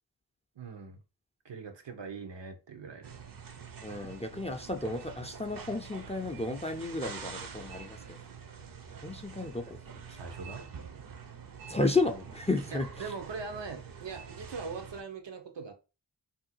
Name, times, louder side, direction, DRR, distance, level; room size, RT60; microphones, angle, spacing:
voice 1, 0.6-1.0 1.4-3.2 10.1-10.7 12.7-15.7, right 4 dB, 85° right, 0.7 m, -41 dB
sound 1, 3.0-15.0, right 6 dB, 55° right, 0.6 m, -46 dB
voice 2, 3.8-8.2 9.0-9.8 10.1-10.2 11.7-12.9, left 2 dB, 15° left, 0.3 m, -32 dB
2.7 x 2.2 x 4.1 m
wide cardioid pair, 75°, 42 cm